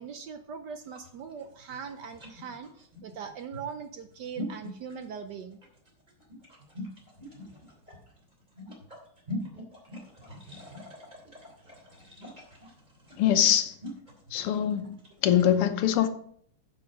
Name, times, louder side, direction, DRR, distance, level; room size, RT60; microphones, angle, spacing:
voice 1, 0.0-5.6, right 6 dB, 70° right, 1.1 m, -41 dB
sound 1, 0.8-15.6, left 2 dB, 20° right, 3.0 m, -44 dB
voice 2, 13.2-13.7 14.3-15.0 15.2-16.1, left 10 dB, 85° left, 1.8 m, -23 dB
9.3 x 6.8 x 5.2 m
omnidirectional pair, 2.4 m